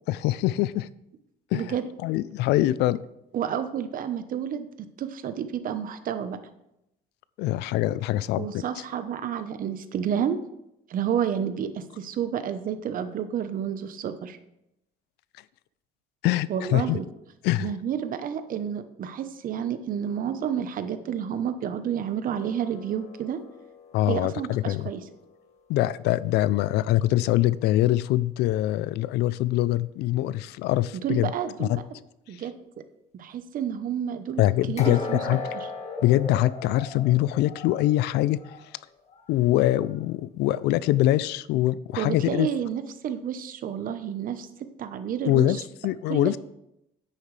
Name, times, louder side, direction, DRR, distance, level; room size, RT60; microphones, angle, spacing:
voice 1, 0.1-0.9 1.5-1.7 2.0-3.0 7.4-8.6 16.2-17.0 17.4-17.7 23.9-24.9 25.7-31.3 31.6-31.8 34.4-35.4 36.0-38.4 39.3-42.5 45.2-46.4, left 15 dB, 85° left, 18 dB, 0.4 m, -23 dB
voice 2, 1.5-1.8 3.3-6.4 8.4-10.4 10.9-14.4 16.5-17.0 17.6-23.4 24.1-25.0 31.0-31.7 32.3-32.5 33.2-34.4 34.7-35.2 35.5-35.7 42.0-44.5 44.8-45.6 46.1-46.4, right 9 dB, 55° right, 10 dB, 0.9 m, -30 dB
sound 1, 22.3-25.4 34.8-38.7 39.1-39.3 39.9-40.0, left 3 dB, 40° left, 1.7 m, -38 dB
9.7 x 8.9 x 3.3 m, 0.84 s
cardioid pair, 110°, 17 cm